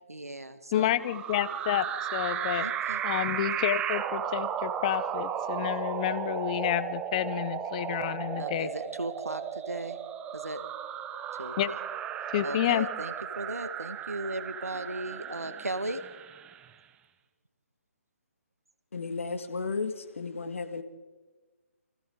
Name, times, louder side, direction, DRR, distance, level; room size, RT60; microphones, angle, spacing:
voice 1, 0.1-0.9 2.6-3.0 8.4-10.0 10.3-10.6 11.4-11.8 12.4-16.0, right 2 dB, 85° right, 1.9 m, -37 dB
voice 2, 0.7-2.7 3.0-8.7 11.6-11.7 12.3-12.9, left 12 dB, 30° left, 0.8 m, -29 dB
sound 1, 1.0-16.7, right 9 dB, 15° right, 0.9 m, -35 dB
voice 3, 18.9-20.8, left 4 dB, 60° left, 2.1 m, -34 dB
29.0 x 24.5 x 3.9 m
figure-of-eight pair, 140°, 8 cm